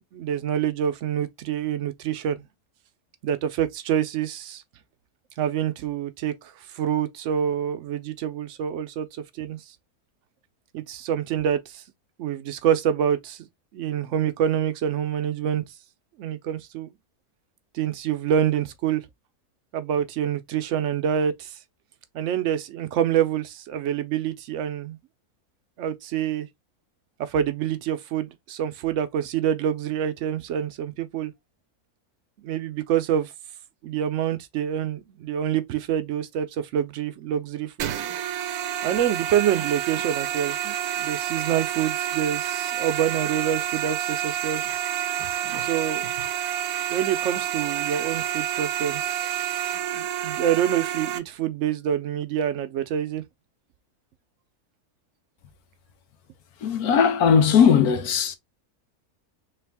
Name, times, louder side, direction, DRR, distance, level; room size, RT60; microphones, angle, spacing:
voice 1, 0.1-2.4 3.2-4.6 5.4-9.6 10.7-11.8 12.2-13.4 13.7-15.6 16.2-16.9 17.7-19.0 19.7-21.6 22.1-25.0 25.8-26.5 27.2-31.3 32.4-33.3 33.8-37.9 38.8-44.6 45.6-46.0 46.9-49.6 49.9-53.2, right 9 dB, 65° right, 0.9 m, -26 dB
sound 1, 37.8-51.2, right 11 dB, 85° right, 1.2 m, -29 dB
voice 2, 56.6-58.3, left 7 dB, 80° left, 1.3 m, -18 dB
3.4 x 3.3 x 3.4 m
omnidirectional pair, 1.6 m